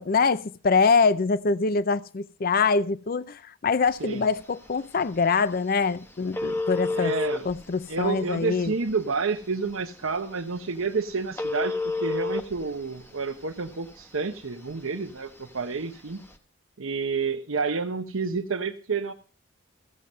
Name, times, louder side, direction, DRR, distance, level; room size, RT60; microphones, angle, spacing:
voice 1, 0.0-7.1 7.5-8.7, left 4 dB, 45° left, 0.5 m, -24 dB
Telephone, 3.8-16.4, left 2 dB, 10° left, 1.0 m, -35 dB
voice 2, 6.9-7.5 7.9-16.2 16.8-19.1, right 4 dB, 85° right, 0.9 m, -29 dB
15.0 x 7.7 x 5.4 m
head